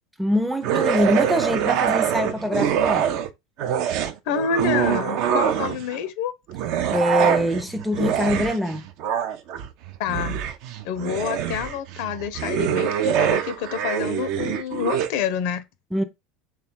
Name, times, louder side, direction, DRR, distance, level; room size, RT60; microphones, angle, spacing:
voice 1, 0.2-3.1 6.9-8.8 15.9-16.0, equal, 5° right, 0.5 m, -23 dB
sound 1, 0.6-3.3 3.6-6.0 6.5-15.1, right 9 dB, 60° right, 0.4 m, -24 dB
voice 2, 4.3-6.3 10.0-10.4 10.8-15.6, left 7 dB, 65° left, 0.4 m, -27 dB
3.2 x 2.2 x 4.3 m
hypercardioid pair, 85°, 0 cm